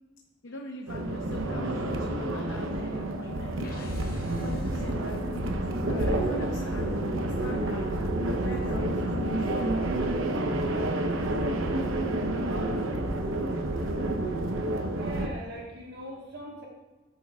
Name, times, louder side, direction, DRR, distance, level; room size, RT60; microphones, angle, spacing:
voice 1, 0.4-4.0 4.4-7.9 8.4-9.7, left 1 dB, 65° left, 2 dB, 0.7 m, -42 dB
sound 1, 0.9-15.3, right 1 dB, 80° right, 0.8 m, -29 dB
sound 2, 3.6-9.7, equal, 45° left, 1.0 m, -43 dB
voice 2, 14.7-16.7, equal, 55° right, -1 dB, 1.5 m, -41 dB
13.0 x 7.6 x 2.4 m, 1.2 s
head